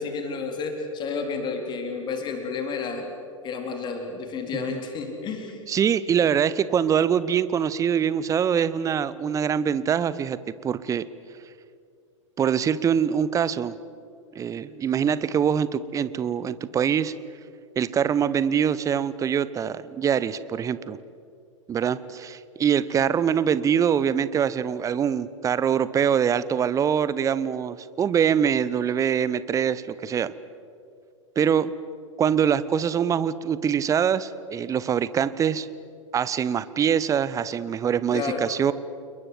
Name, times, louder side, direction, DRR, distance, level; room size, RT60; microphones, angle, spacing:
voice 1, 0.0-3.1 3.4-5.6 38.1-38.4, left 5 dB, 25° left, 3 dB, 4.1 m, -31 dB
voice 2, 5.7-11.1 12.4-13.8 14.3-17.1 17.8-21.0 21.7-30.3 31.4-31.7 32.2-35.7 36.1-38.7, right 8 dB, 20° right, 16 dB, 0.9 m, -24 dB
29.5 x 21.5 x 7.9 m, 2.4 s
figure-of-eight pair, 95°, 17 cm